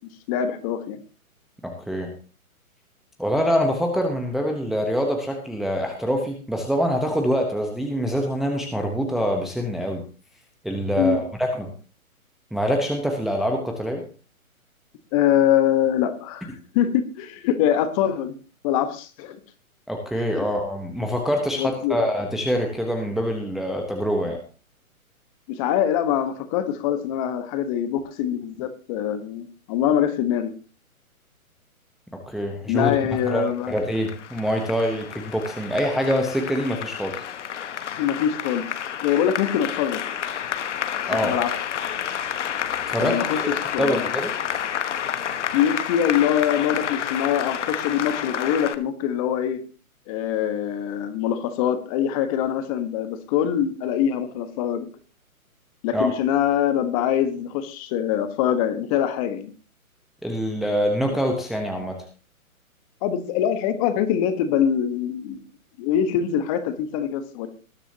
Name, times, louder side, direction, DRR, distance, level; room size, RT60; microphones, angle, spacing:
voice 1, 0.3-1.0 11.0-11.2 15.1-18.3 18.6-19.4 20.4-20.5 21.6-22.0 25.5-30.5 32.7-33.7 38.0-38.7 39.0-40.0 41.2-41.5 43.0-43.4 43.7-44.1 45.5-49.6 50.1-54.9 55.8-59.5 63.0-65.4 65.8-67.5, left 9 dB, 25° left, 11 dB, 1.2 m, -23 dB
voice 2, 3.2-10.0 10.6-11.2 11.6-11.7 12.5-14.0 19.9-24.4 32.3-33.0 33.3-37.1 41.1-41.3 42.9-44.3 55.9-56.1 60.2-62.0, equal, ahead, 1 dB, 0.9 m, -25 dB
Applause, 33.4-48.8, left 9 dB, 55° left, 1.3 m, -30 dB
19.5 x 9.9 x 2.8 m, 0.36 s
hypercardioid pair, 140°, 43 cm